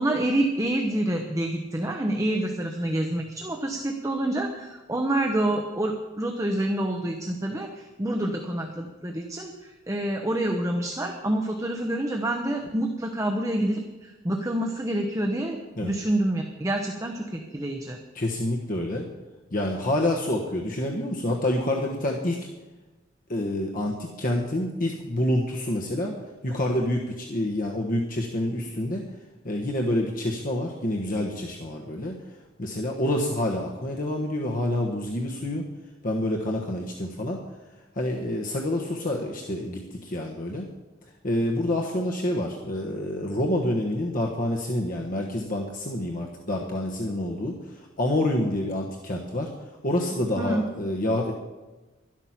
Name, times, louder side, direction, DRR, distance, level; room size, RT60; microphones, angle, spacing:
voice 1, 0.0-18.0 50.4-50.6, right 1 dB, 15° right, 3 dB, 0.9 m, -27 dB
voice 2, 18.1-19.1 19.5-22.4 23.3-26.2 26.4-29.0 29.4-32.1 32.6-35.6 36.0-37.4 38.0-40.7 41.2-49.5 49.8-51.3, left 1 dB, 45° left, -1 dB, 1.3 m, -27 dB
12.0 x 12.0 x 5.9 m, 1.2 s
head